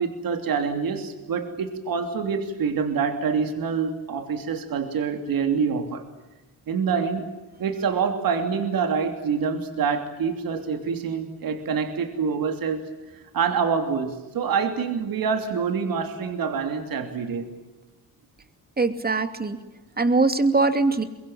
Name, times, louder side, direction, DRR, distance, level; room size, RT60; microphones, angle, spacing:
voice 1, 0.0-6.0 6.7-7.3 7.6-12.8 13.3-17.5, right 6 dB, 75° right, 6 dB, 3.1 m, -26 dB
voice 2, 18.8-19.6 20.0-21.0, right 3 dB, 25° right, 9 dB, 2.7 m, -21 dB
23.5 x 22.5 x 9.0 m, 1.1 s
cardioid pair, 90°, 35 cm